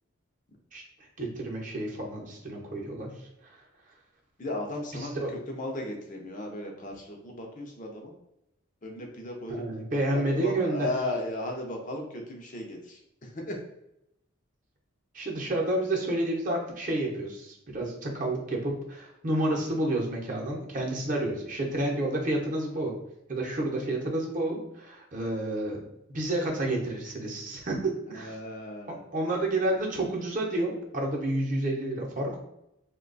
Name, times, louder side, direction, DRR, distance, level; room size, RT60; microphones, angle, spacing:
voice 1, 1.2-3.1 3.4-3.6 4.9-5.3 9.5-10.9 15.1-22.9 23.3-25.8 26.1-28.4 28.9-32.4, right 1 dB, 40° right, -1 dB, 0.7 m, -30 dB
voice 2, 4.4-5.1 5.5-8.1 8.8-9.6 10.1-13.0 13.4-13.6 28.2-29.1, left 1 dB, 40° left, 1 dB, 0.5 m, -35 dB
2.9 x 2.2 x 3.9 m, 0.83 s
head